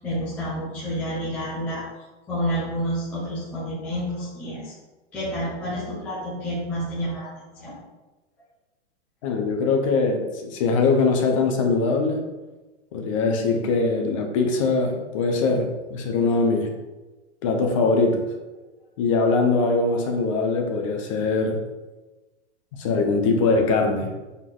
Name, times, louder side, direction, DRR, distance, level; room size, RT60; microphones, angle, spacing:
voice 1, 0.0-1.9 2.3-4.7 5.1-7.8, equal, 5° left, -10 dB, 0.5 m, -29 dB
voice 2, 9.2-12.3 12.9-16.7 17.4-18.2 19.0-21.6 22.7-24.1, left 3 dB, 30° left, 3 dB, 0.8 m, -22 dB
7.6 x 4.0 x 3.8 m, 1.1 s
supercardioid pair, 175°, 35 cm